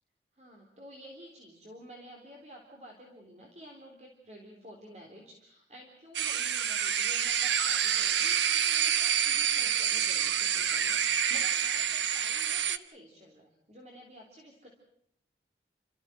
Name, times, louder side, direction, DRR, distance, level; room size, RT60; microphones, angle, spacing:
voice 1, 0.3-14.7, equal, 40° right, 0 dB, 3.7 m, -51 dB
sound 1, 6.1-12.8, right 9 dB, 85° right, 1.2 m, -28 dB
29.5 x 14.5 x 9.3 m, 0.73 s
head